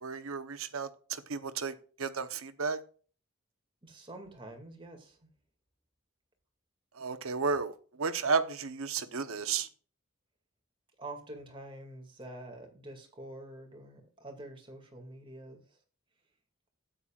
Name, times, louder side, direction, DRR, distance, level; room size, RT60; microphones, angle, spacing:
voice 1, 0.0-2.8 6.9-9.7, right 5 dB, 80° right, 0.9 m, -33 dB
voice 2, 3.8-5.3 11.0-15.8, right 1 dB, 25° right, 2.3 m, -47 dB
12.5 x 9.1 x 2.4 m
head